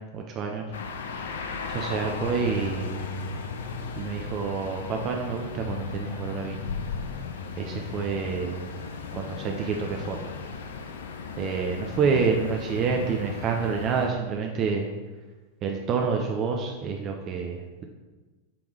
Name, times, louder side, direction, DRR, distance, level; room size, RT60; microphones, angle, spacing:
voice 1, 0.1-0.7 1.7-3.1 4.0-6.6 7.6-8.7 9.1-10.3 11.4-14.9 15.6-17.8, right 5 dB, 35° right, 2 dB, 0.6 m, -28 dB
sound 1, 0.7-14.1, left 5 dB, 60° left, 0.6 m, -36 dB
7.7 x 3.6 x 4.8 m, 1.3 s
figure-of-eight pair, 90°, 0 cm